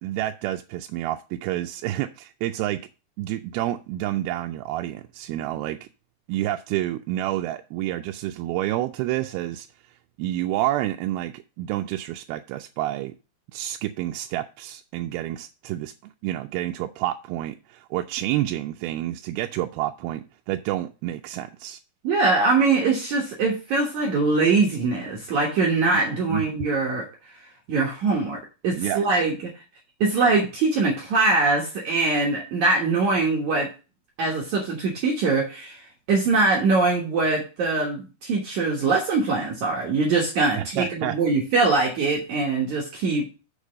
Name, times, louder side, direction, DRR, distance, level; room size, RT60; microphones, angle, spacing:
voice 1, 0.0-2.8 3.2-5.8 6.3-9.7 10.2-13.1 13.5-15.9 16.2-21.8 26.3-26.7 28.1-28.2 28.7-29.1 40.6-41.2, right 14 dB, 85° right, 2.4 m, -29 dB
voice 2, 22.0-27.1 27.7-29.4 30.0-33.7 34.2-35.8 36.1-43.3, right 3 dB, 60° right, 2.3 m, -22 dB
6.7 x 5.0 x 6.3 m
omnidirectional pair, 4.4 m